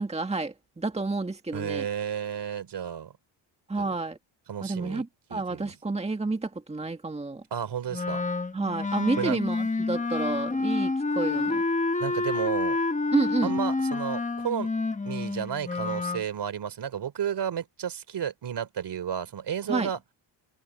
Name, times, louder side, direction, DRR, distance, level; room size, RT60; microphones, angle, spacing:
voice 1, 0.0-1.9 3.7-4.2 4.6-7.4 8.5-11.6 13.1-13.5 19.7-19.9, right 3 dB, 15° right, 1.8 m, -29 dB
voice 2, 1.5-3.1 3.8-4.0 4.5-5.7 7.5-8.2 9.2-9.4 12.0-12.8 13.4-14.7 15.0-20.0, right 8 dB, 55° right, 3.5 m, -32 dB
Wind instrument woodwind instrument, 7.9-16.2, left 3 dB, 15° left, 1.2 m, -28 dB
cardioid pair, 110°, 48 cm